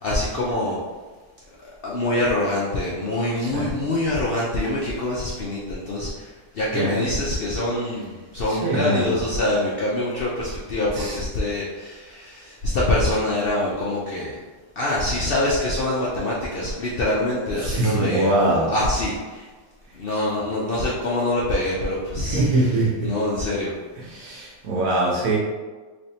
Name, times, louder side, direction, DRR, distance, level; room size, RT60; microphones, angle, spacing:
voice 1, 0.0-0.8 1.6-14.3 14.8-18.3 18.7-19.5 19.9-22.4 23.0-23.7, left 1 dB, 60° left, -6 dB, 0.6 m, -25 dB
voice 2, 8.5-9.2 10.9-11.2 17.6-18.7 22.2-23.1 24.0-25.4, right 2 dB, 70° right, -4 dB, 1.3 m, -23 dB
3.4 x 3.2 x 2.7 m, 1.3 s
omnidirectional pair, 1.5 m